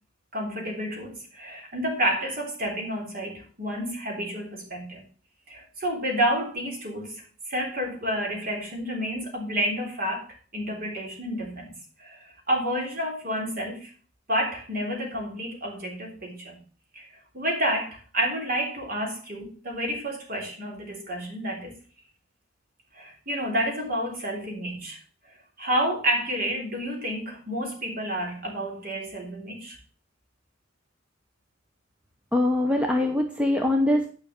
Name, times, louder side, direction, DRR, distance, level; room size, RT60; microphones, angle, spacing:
voice 1, 0.3-5.0 5.5-11.7 12.0-13.9 14.3-16.6 16.9-17.1 17.3-21.7 22.9-25.0 25.6-29.8, equal, 50° right, 1 dB, 3.5 m, -30 dB
voice 2, 32.3-34.1, left 1 dB, 5° right, 3 dB, 0.9 m, -23 dB
9.9 x 5.9 x 6.6 m, 0.40 s
head